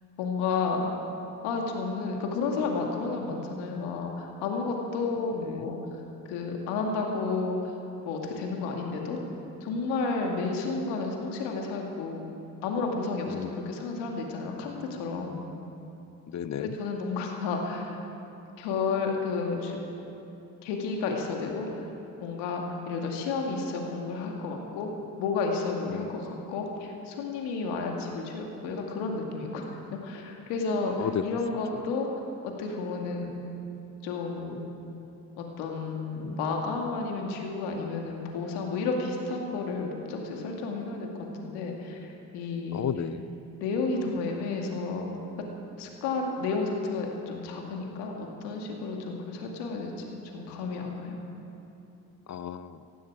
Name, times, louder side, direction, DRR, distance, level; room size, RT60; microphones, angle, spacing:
voice 1, 0.2-0.9 1.4-5.8 6.3-7.6 8.1-9.2 9.6-12.2 12.6-15.4 16.6-17.9 18.6-19.8 20.6-21.9 22.2-24.9 25.2-32.1 32.4-33.3 34.0-34.6 35.4-42.9 43.6-45.1 45.8-49.9 50.3-51.2, left 4 dB, 80° left, 1 dB, 2.2 m, -31 dB
voice 2, 5.4-5.7 13.3-13.5 16.3-16.8 25.9-26.1 31.0-31.3 31.7-31.9 42.7-43.3 52.3-52.8, left 9 dB, 45° left, 14 dB, 0.7 m, -33 dB
18.0 x 15.5 x 4.8 m, 2.9 s
hypercardioid pair, 50°, 40 cm